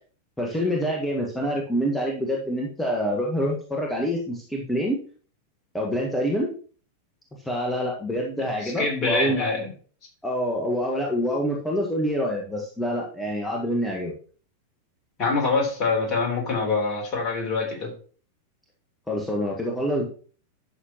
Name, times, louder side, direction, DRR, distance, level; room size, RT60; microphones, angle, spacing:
voice 1, 0.4-5.0 5.7-6.5 7.4-9.4 10.2-14.2 19.1-20.1, equal, 5° left, -2 dB, 1.6 m, -26 dB
voice 2, 8.6-9.7 15.2-17.9, left 3 dB, 35° left, 1 dB, 3.7 m, -25 dB
11.5 x 6.7 x 3.1 m, 0.42 s
figure-of-eight pair, 90°, 0 cm